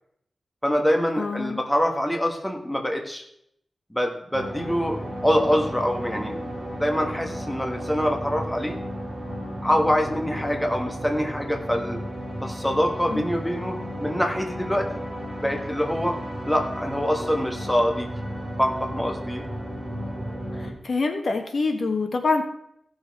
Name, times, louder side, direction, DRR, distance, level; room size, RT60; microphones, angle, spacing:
voice 1, 0.6-3.2 3.9-8.8 9.6-12.0 12.4-14.9 15.4-16.2 16.5-18.1 18.6-19.4, equal, 5° left, 2 dB, 1.3 m, -25 dB
voice 2, 1.2-1.6 13.1-13.2 20.6-22.4, left 3 dB, 55° left, 5 dB, 1.3 m, -25 dB
sound 1, 4.3-20.7, equal, 20° right, 3.5 m, -34 dB
16.0 x 6.3 x 4.7 m, 0.73 s
wide cardioid pair, 140°, 0 cm